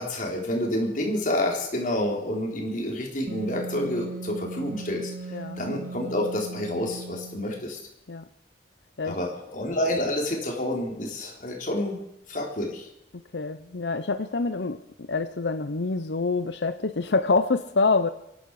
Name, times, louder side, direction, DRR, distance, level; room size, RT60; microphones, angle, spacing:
voice 1, 0.0-5.1 5.6-7.8 9.0-12.0 12.3-12.9, left 1 dB, 50° left, 1 dB, 3.9 m, -28 dB
Wind instrument woodwind instrument, 3.3-7.7, right 4 dB, 90° right, 2.2 m, -38 dB
voice 2, 5.3-5.6 8.1-8.2 9.0-9.2 13.3-18.1, left 3 dB, 80° left, 11 dB, 0.7 m, -26 dB
23.0 x 12.5 x 4.9 m, 0.85 s
head